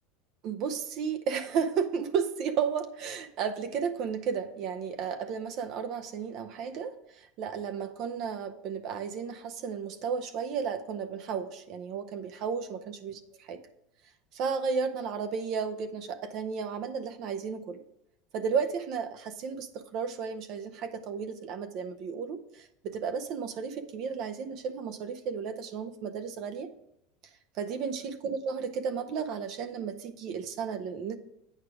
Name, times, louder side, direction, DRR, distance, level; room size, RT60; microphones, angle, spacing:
voice 1, 0.4-13.1 13.5-13.6 14.3-17.8 18.3-26.7 27.6-31.2, right 6 dB, 50° right, 8 dB, 0.7 m, -33 dB
8.7 x 4.9 x 4.8 m, 0.78 s
supercardioid pair, 130°, 0 cm